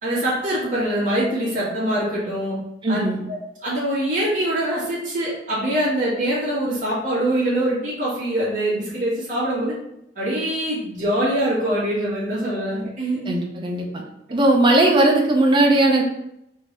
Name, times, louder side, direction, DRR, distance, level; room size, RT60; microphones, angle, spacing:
voice 1, 0.0-2.6 2.9-3.4 3.6-9.7 10.1-13.3, right 1 dB, 40° right, -9 dB, 1.7 m, -24 dB
voice 2, 2.8-3.2 13.2-14.0 14.3-16.0, right 2 dB, 25° right, 0 dB, 0.7 m, -18 dB
3.6 x 2.8 x 4.5 m, 0.81 s
head